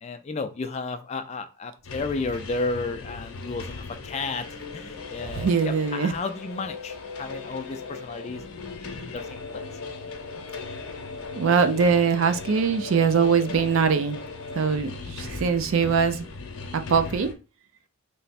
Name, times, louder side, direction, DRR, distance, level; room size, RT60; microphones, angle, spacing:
voice 1, 0.0-4.5 4.7-8.4 8.8-9.6 15.2-15.3, left 3 dB, 30° left, 8 dB, 0.3 m, -33 dB
sound 1, 1.8-17.3, left 4 dB, 75° left, 0.7 m, -38 dB
voice 2, 5.3-6.1 11.4-14.2 14.5-16.3 16.7-17.3, right 6 dB, 60° right, 9 dB, 0.4 m, -22 dB
3.3 x 2.1 x 4.1 m, 0.32 s
head